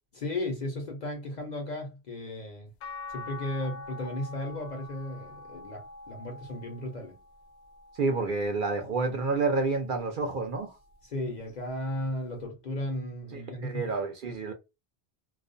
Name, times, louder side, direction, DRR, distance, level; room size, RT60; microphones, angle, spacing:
voice 1, 0.1-2.7 3.1-7.2 11.0-13.9, left 1 dB, 50° left, 0.6 m, -35 dB
sound 1, 2.8-9.1 9.7-11.0 12.4-12.5, left 3 dB, 90° left, 0.9 m, -46 dB
voice 2, 8.0-10.8 13.3-14.5, right 3 dB, 60° right, 0.6 m, -29 dB
2.4 x 2.1 x 2.5 m
omnidirectional pair, 1.1 m